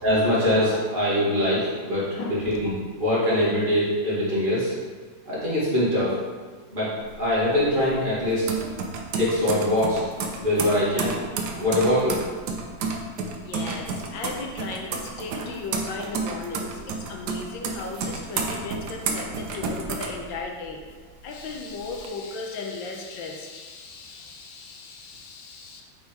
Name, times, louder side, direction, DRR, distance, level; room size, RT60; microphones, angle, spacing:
voice 1, 0.0-2.7 3.0-4.7 5.3-6.1 6.7-6.9 7.2-8.5 9.2-10.0 10.4-11.2 11.6-12.2, left 1 dB, 25° right, -9 dB, 2.1 m, -23 dB
sound 1, 7.0-20.8 21.2-22.1, right 4 dB, 65° right, 1.1 m, -31 dB
voice 2, 13.4-20.9 21.2-25.8, left 3 dB, 70° left, 1 dB, 1.4 m, -36 dB
5.5 x 4.4 x 4.5 m, 1.5 s
omnidirectional pair, 2.2 m